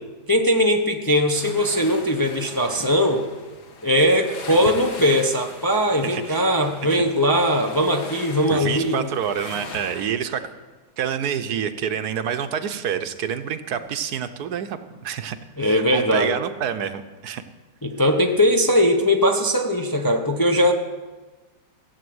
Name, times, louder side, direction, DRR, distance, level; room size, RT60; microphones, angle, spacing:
voice 1, 0.3-3.2 3.8-9.0 15.6-16.4 17.8-20.7, equal, 20° left, 3 dB, 0.7 m, -20 dB
sound 1, 1.3-10.1, left 4 dB, 85° left, 2.0 m, -40 dB
voice 2, 6.0-6.4 6.9-7.0 8.5-10.4 11.0-17.4, right 8 dB, 75° right, 10 dB, 1.3 m, -28 dB
15.5 x 8.5 x 7.9 m, 1.2 s
omnidirectional pair, 1.7 m